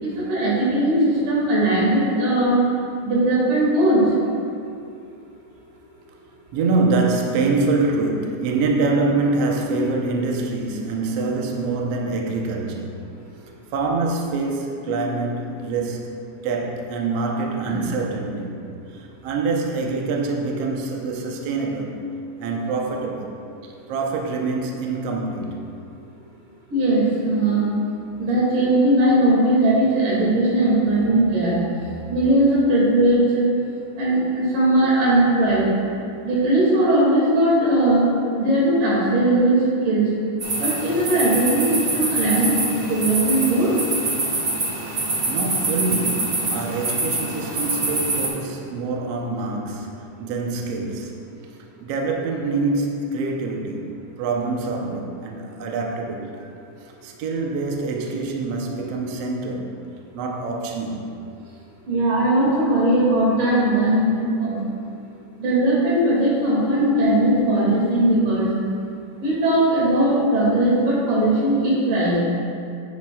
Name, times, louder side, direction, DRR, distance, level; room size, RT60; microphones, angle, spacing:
voice 1, 0.0-2.6 3.1-4.1 17.6-17.9 26.7-27.7 28.2-31.6 32.1-33.4 34.0-35.7 36.2-38.0 38.4-39.6 39.9-40.1 40.6-41.7 41.9-43.8 61.9-64.6 65.4-68.5 69.2-72.2, right 1 dB, 90° right, -6 dB, 3.8 m, -19 dB
voice 2, 6.5-13.0 13.7-16.2 16.4-22.1 22.4-23.4 23.6-25.7 45.3-51.3 51.8-56.5 57.0-59.8 60.1-61.1, right 3 dB, 70° right, 1 dB, 1.5 m, -25 dB
sound 1, 40.4-48.3, right 2 dB, 50° right, 1.0 m, -25 dB
9.6 x 9.1 x 2.3 m, 2.5 s
omnidirectional pair, 3.6 m